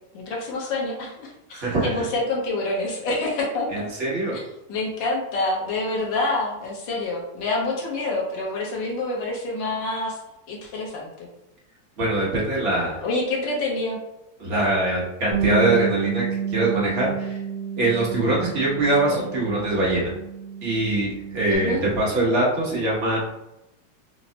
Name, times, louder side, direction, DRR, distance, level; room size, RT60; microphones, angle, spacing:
voice 1, 0.1-3.7 4.3-4.4 4.7-10.2 10.5-11.3 13.0-14.0 19.1-19.3 21.5-21.8, left 2 dB, 85° left, -2 dB, 1.6 m, -27 dB
voice 2, 1.5-2.0 3.7-4.4 12.0-13.0 14.4-16.2 16.5-17.4 17.8-20.1 20.6-23.2, right 2 dB, 40° right, -5 dB, 1.2 m, -23 dB
Bass guitar, 15.3-21.6, right 7 dB, 55° right, 1.0 m, -30 dB
5.6 x 2.0 x 2.7 m, 0.91 s
omnidirectional pair, 1.9 m